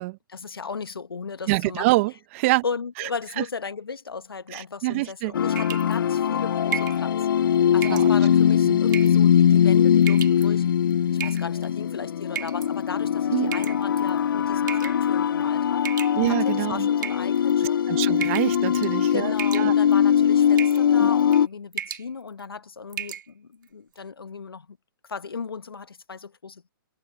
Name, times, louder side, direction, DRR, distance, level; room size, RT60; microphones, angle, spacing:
voice 1, 0.3-2.0 2.6-7.4 7.7-10.6 11.2-15.9 16.3-17.8 19.1-24.8 25.1-26.6, left 5 dB, 80° left, 1.2 m, -36 dB
voice 2, 1.5-2.6 3.0-3.1 3.4-3.5 4.5-5.3 7.8-8.1 8.6-8.8 13.3-13.5 16.1-16.9 17.9-19.7 21.0-21.1, right 22 dB, 35° right, 1.0 m, -26 dB
sound 1, 5.3-21.5, left 9 dB, 65° left, 0.4 m, -21 dB
sound 2, 5.6-6.0 6.7-7.0 7.8-8.1 8.9-9.2 10.0-10.4 11.2-11.7 12.4-12.7 13.5-14.1 14.7-15.0 15.8-16.5 17.0-17.7 18.2-18.6 18.8-19.1 19.4-20.0 20.6-20.8 21.2-21.4 21.7-22.1 22.4-22.5 22.9-23.2, right 9 dB, 55° right, 1.8 m, -33 dB
figure-of-eight pair, 130°, 12 cm